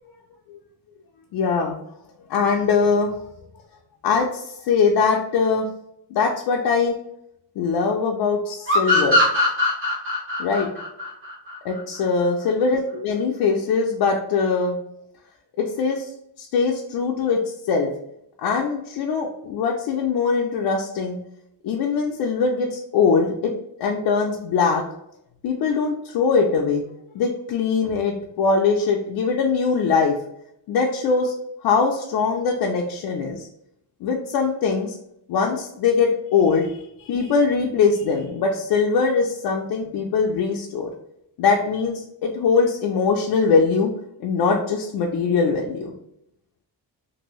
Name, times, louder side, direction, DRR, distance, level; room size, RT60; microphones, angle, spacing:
voice 1, 1.3-1.8 2.3-3.2 4.0-5.7 6.1-7.0 7.6-9.2 10.4-10.7 11.6-14.8 15.6-16.1 16.4-17.4 17.6-17.9 18.4-21.2 21.6-23.5 23.8-24.8 25.4-26.8 27.1-30.2 30.7-31.3 31.6-33.5 34.0-35.0 35.3-40.9 41.4-43.9 44.2-45.9, left 5 dB, 65° left, 0 dB, 0.5 m, -22 dB
sound 1, 8.7-12.0, left 1 dB, 30° right, 1.0 m, -21 dB
2.6 x 2.6 x 3.0 m, 0.78 s
cardioid pair, 130°, 42 cm